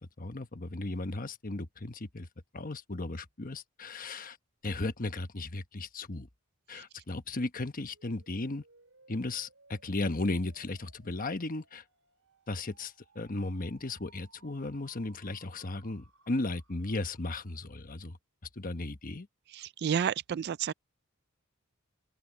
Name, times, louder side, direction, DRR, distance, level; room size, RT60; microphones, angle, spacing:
voice 1, 0.0-2.3 2.5-4.4 4.6-6.3 6.7-8.6 9.1-11.8 12.5-18.2 18.6-19.3, left 2 dB, 40° left, 1.1 m, -35 dB
sound 1, 7.9-17.8, right 3 dB, 70° right, 6.3 m, -64 dB
voice 2, 19.5-20.7, right 8 dB, 50° right, 0.3 m, -30 dB
open air
head